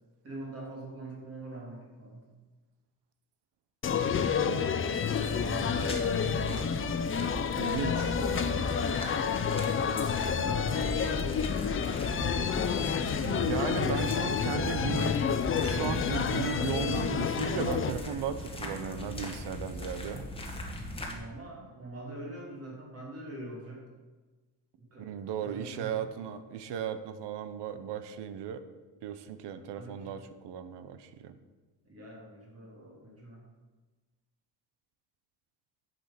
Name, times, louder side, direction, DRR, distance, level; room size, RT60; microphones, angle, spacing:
voice 1, 0.2-2.3 5.2-6.4 7.9-8.8 10.1-11.2 12.5-13.4 21.0-23.8 24.8-25.1 25.4-26.1 29.6-30.1 31.8-33.4, right 1 dB, 35° right, -3 dB, 3.3 m, -43 dB
sound 1, 3.8-17.9, left 7 dB, 30° left, 0.6 m, -29 dB
sound 2, 5.0-21.1, left 1 dB, 15° left, 1.5 m, -39 dB
voice 2, 7.6-8.1 13.2-15.2 15.6-20.3 25.0-28.6 29.0-31.4, right 8 dB, 80° right, 11 dB, 1.0 m, -36 dB
10.5 x 7.3 x 6.0 m, 1.3 s
cardioid pair, 160°, 41 cm